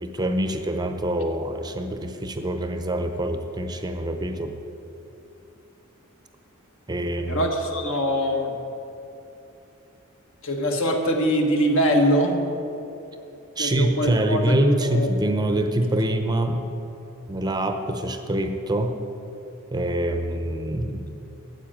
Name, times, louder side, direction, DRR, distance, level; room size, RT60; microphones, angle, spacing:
voice 1, 0.0-4.5 6.9-7.4 13.6-16.7 17.3-19.0 19.7-21.1, right 1 dB, 20° right, 6 dB, 0.6 m, -25 dB
voice 2, 7.3-8.5 10.4-12.4 13.6-15.1, equal, 65° left, 3 dB, 1.5 m, -23 dB
9.7 x 7.9 x 9.1 m, 2.9 s
head